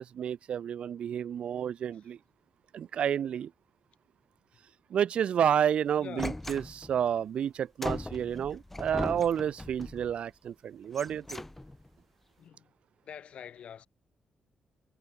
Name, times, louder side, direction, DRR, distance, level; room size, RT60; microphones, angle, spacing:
voice 1, 0.0-2.2 2.7-3.5 4.9-11.4, right 9 dB, 60° right, 0.3 m, -30 dB
voice 2, 6.0-6.4 12.4-12.7 13.0-13.9, left 8 dB, 60° left, 4.3 m, -45 dB
sound 1, 6.2-7.1 7.8-10.1 10.8-11.9, left 1 dB, 10° left, 1.5 m, -38 dB
cardioid pair, 125°, 2 cm